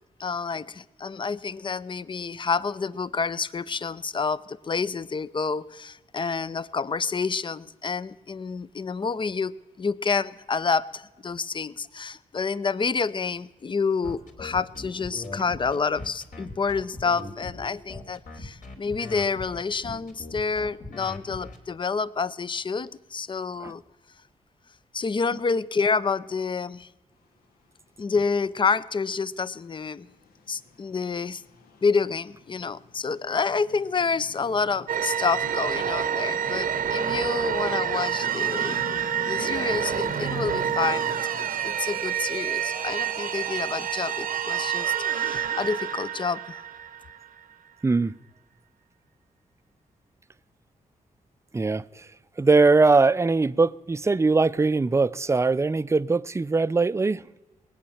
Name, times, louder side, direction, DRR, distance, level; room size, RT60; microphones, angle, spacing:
voice 1, 0.2-23.8 24.9-26.9 28.0-30.1 30.5-31.4 31.8-38.8 39.3-46.6, left 5 dB, 35° left, 0.6 m, -28 dB
sound 1, 14.0-21.6, left 2 dB, 60° left, 2.9 m, -39 dB
sound 2, 29.3-45.9, left 4 dB, 80° left, 1.4 m, -46 dB
sound 3, 34.9-47.4, right 8 dB, 70° right, 0.9 m, -28 dB
voice 2, 47.8-48.2 51.5-52.1 52.4-57.2, right 3 dB, 20° right, 0.5 m, -21 dB
19.5 x 8.7 x 7.1 m
cardioid pair, 65°, 15 cm